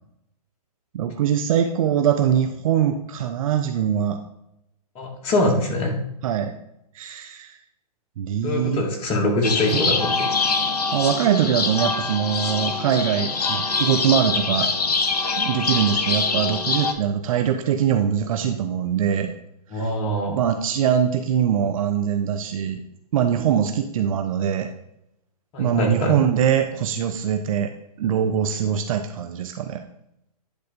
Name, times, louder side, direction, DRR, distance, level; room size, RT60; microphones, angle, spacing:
voice 1, 0.9-4.2 6.2-6.5 6.9-7.5 8.2-8.8 10.9-14.7 15.4-19.3 19.7-19.9 20.3-22.8 23.1-24.7 25.6-27.7 28.0-29.8, right 9 dB, 55° right, 6 dB, 0.8 m, -22 dB
voice 2, 5.0-6.0 8.4-10.3 19.7-20.4 25.5-26.2, left 1 dB, 30° left, 1 dB, 2.2 m, -23 dB
sound 1, 9.4-16.9, left 4 dB, 85° left, 1.2 m, -24 dB
10.0 x 3.9 x 5.2 m, 0.79 s
hypercardioid pair, 130°, 20 cm